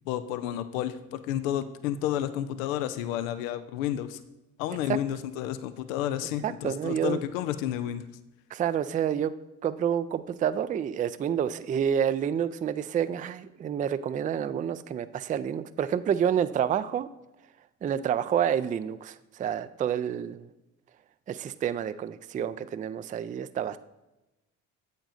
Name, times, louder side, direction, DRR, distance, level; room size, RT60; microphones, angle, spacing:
voice 1, 0.1-4.2 4.6-8.0, left 11 dB, 85° left, 12 dB, 0.5 m, -31 dB
voice 2, 6.4-7.2 8.5-9.3 9.6-17.1 17.8-20.5 21.3-23.8, right 9 dB, 20° right, 13 dB, 0.3 m, -28 dB
9.0 x 7.9 x 2.6 m, 0.98 s
hypercardioid pair, 50°, 39 cm